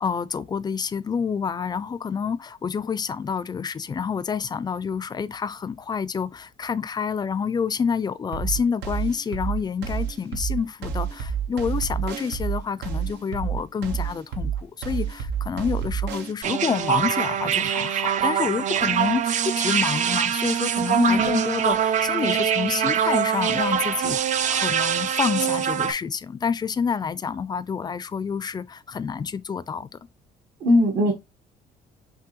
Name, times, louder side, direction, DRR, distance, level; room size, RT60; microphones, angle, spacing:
voice 1, 0.0-29.9, left 6 dB, 25° left, 0.4 m, -28 dB
sound 1, 8.3-16.3, right 7 dB, 85° right, 0.9 m, -29 dB
sound 2, 16.4-25.9, right 8 dB, 45° right, 0.5 m, -24 dB
voice 2, 20.9-21.3 30.6-31.1, left 1 dB, 65° right, 1.3 m, -19 dB
6.0 x 2.6 x 3.0 m
cardioid pair, 110°, 17 cm